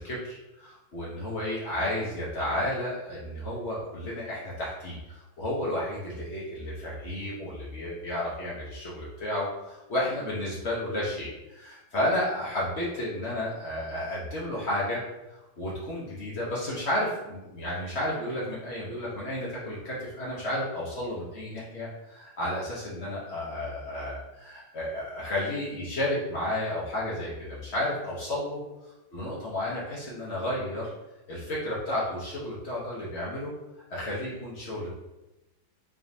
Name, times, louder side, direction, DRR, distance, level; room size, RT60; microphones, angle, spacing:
voice 1, 0.0-15.0 15.3-28.6 29.1-30.9 31.3-33.5 33.9-35.0, left 1 dB, 85° left, -7 dB, 0.5 m, -32 dB
3.6 x 3.5 x 2.7 m, 1.0 s
omnidirectional pair, 2.2 m